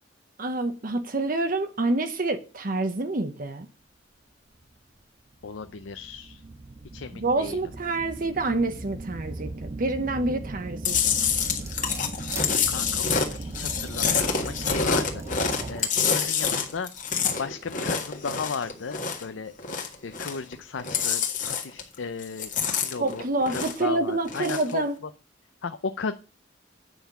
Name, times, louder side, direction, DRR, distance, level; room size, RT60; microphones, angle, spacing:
voice 1, 0.4-3.7 7.2-11.2 22.9-25.0, right 2 dB, 45° right, 0.9 m, -27 dB
sound 1, 4.6-4.7 5.4-16.1, right 2 dB, 30° right, 0.6 m, -38 dB
voice 2, 5.4-6.4 6.9-7.6 12.7-16.9 17.4-19.5 20.0-25.1 25.6-26.1, left 5 dB, 80° left, 0.6 m, -35 dB
Chewing mastication, 10.8-19.3 19.6-20.5 20.8-21.9 22.2-23.9 24.2-24.7, left 6 dB, 45° left, 1.6 m, -27 dB
sound 2, 11.6-12.5 13.4-14.6 15.2-16.0 16.6-16.7, right 3 dB, 15° right, 1.6 m, -41 dB
9.2 x 5.8 x 7.1 m
head